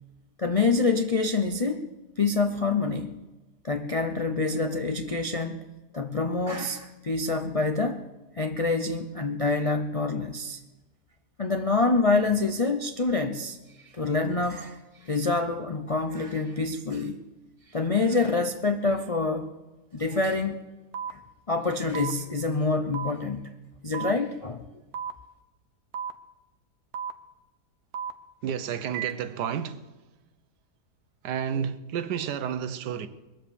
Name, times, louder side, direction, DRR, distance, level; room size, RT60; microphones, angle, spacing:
voice 1, 0.4-1.9 2.2-3.2 3.6-5.6 5.9-8.0 8.4-10.6 11.4-17.2 17.7-19.5 19.9-20.6 21.1-21.2 21.5-23.5 23.8-24.6, left 3 dB, 55° left, 0.3 m, -26 dB
sound 1, 20.9-21.1 21.9-22.1 22.9-23.1 23.9-24.1 24.9-25.1 25.9-26.1 26.9-27.1 27.9-28.1 28.9-29.1, right 8 dB, 70° right, 1.3 m, -32 dB
voice 2, 28.4-29.9 31.2-33.1, right 8 dB, 90° right, 1.4 m, -31 dB
21.5 x 7.6 x 6.9 m
omnidirectional pair, 1.7 m